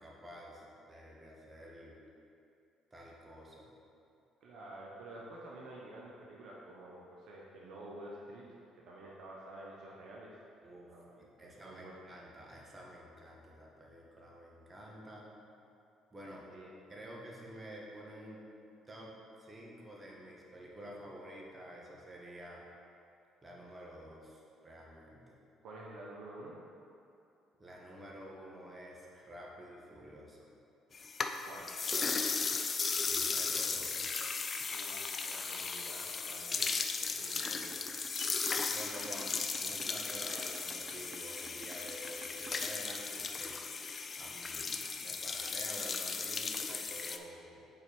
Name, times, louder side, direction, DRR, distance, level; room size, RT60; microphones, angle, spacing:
voice 1, 0.0-2.0 2.9-3.7 10.6-15.3 16.1-16.5 16.9-18.4 18.9-22.6 23.4-25.4 27.6-30.4 33.0-34.2 38.3-43.6 44.2-47.7, equal, 25° right, -3 dB, 1.6 m, -50 dB
voice 2, 4.4-10.3 10.9-12.0 16.5-16.7 25.6-26.6 31.4-32.3 34.7-37.8, right 1 dB, 65° right, -4 dB, 0.9 m, -50 dB
sound 1, 30.9-47.2, left 4 dB, 40° left, 0.5 m, -36 dB
sound 2, 37.5-43.5, right 5 dB, 50° right, 0.5 m, -52 dB
5.9 x 4.4 x 5.3 m, 2.6 s
hypercardioid pair, 55°, 0 cm